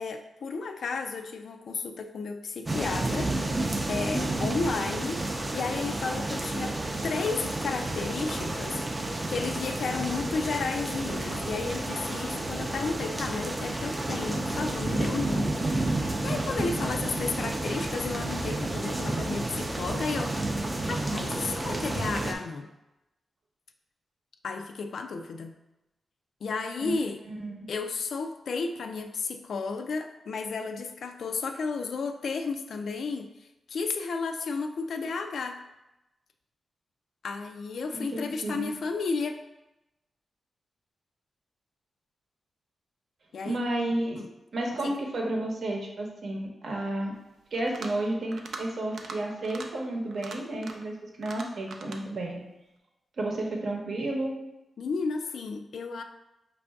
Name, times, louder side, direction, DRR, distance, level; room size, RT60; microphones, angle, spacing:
voice 1, 0.0-3.3 3.9-5.3 5.5-15.6 16.0-20.4 20.8-22.7 24.4-25.6 26.4-27.2 27.7-33.3 33.7-35.6 37.2-39.4 43.3-43.6 44.1-44.3 44.8-44.9 54.8-56.0, left 4 dB, 75° left, 6 dB, 0.3 m, -33 dB
sound 1, 2.7-22.3, right 2 dB, 25° right, 0.4 m, -31 dB
voice 2, 27.3-27.6 37.9-38.7 43.4-44.2 44.5-47.1 47.5-52.4 53.2-54.4, right 1 dB, 65° right, 0 dB, 0.8 m, -31 dB
sound 2, 47.5-48.0 48.3-48.6 48.9-49.2 49.4-49.7 50.1-50.9 51.2-52.0, right 4 dB, 85° right, 0.4 m, -41 dB
5.3 x 2.6 x 3.4 m, 0.95 s
wide cardioid pair, 135°, 0 cm